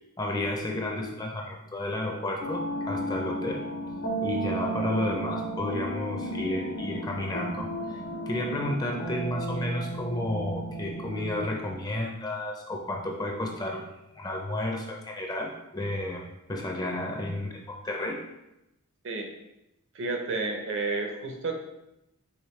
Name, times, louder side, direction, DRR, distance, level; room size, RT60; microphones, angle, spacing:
voice 1, 0.2-3.6 4.2-8.0 8.3-18.2, left 1 dB, 15° left, 0 dB, 0.5 m, -32 dB
sound 1, 2.4-11.5, right 1 dB, 55° left, 0.7 m, -34 dB
voice 2, 19.9-21.6, right 3 dB, 55° right, 3 dB, 0.6 m, -31 dB
5.0 x 3.1 x 3.1 m, 0.90 s
head